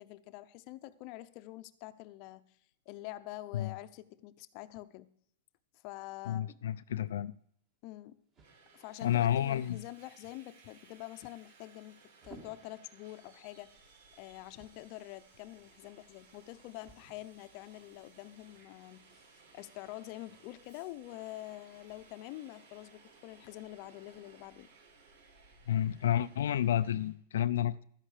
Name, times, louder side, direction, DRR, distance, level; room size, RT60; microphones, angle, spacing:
voice 1, 0.0-2.6 2.9-5.1 5.7-6.6 7.8-8.2 8.7-13.9 14.2-19.2 19.5-24.7, left 16 dB, 40° left, 0.7 m, -46 dB
voice 2, 6.3-7.3 9.0-9.8 25.7-27.8, left 11 dB, 85° left, 0.4 m, -30 dB
sound 1, 7.0-20.4, right 2 dB, 25° right, 2.3 m, -63 dB
Subway metro underground, 8.4-27.1, right 4 dB, 70° right, 5.9 m, -61 dB
13.0 x 10.0 x 5.0 m
supercardioid pair, 155°, 0 cm